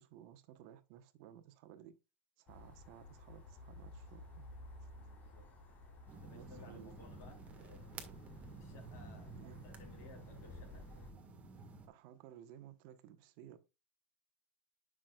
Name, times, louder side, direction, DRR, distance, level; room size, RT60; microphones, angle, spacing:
voice 1, 0.0-1.9 2.4-4.4 6.3-6.9 7.2-7.3 9.3-9.6 11.9-13.6, right 11 dB, 55° right, 1.2 m, -56 dB
sound 1, 2.5-11.1, left 2 dB, 30° left, 3.1 m, -55 dB
voice 2, 4.9-5.5 6.2-7.9 8.6-11.7, left 3 dB, 45° left, 3.6 m, -60 dB
sound 2, 6.1-11.9, right 4 dB, 20° right, 1.6 m, -52 dB
10.0 x 6.1 x 2.4 m
supercardioid pair, 135°, 6 cm